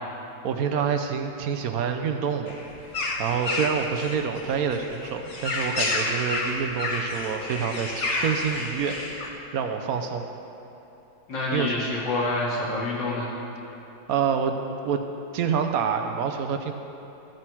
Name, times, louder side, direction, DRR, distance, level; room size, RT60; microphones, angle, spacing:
voice 1, 0.4-2.5 3.2-9.0 9.5-10.3 11.5-11.8 14.1-14.5 14.8-15.0 15.3-16.7, right 7 dB, 65° right, 5 dB, 0.9 m, -27 dB
sound 1, 2.5-9.3, left 2 dB, 45° left, 1.2 m, -30 dB
voice 2, 11.3-13.3, left 2 dB, 75° left, -6 dB, 2.9 m, -27 dB
14.0 x 7.7 x 4.6 m, 2.9 s
omnidirectional pair, 2.0 m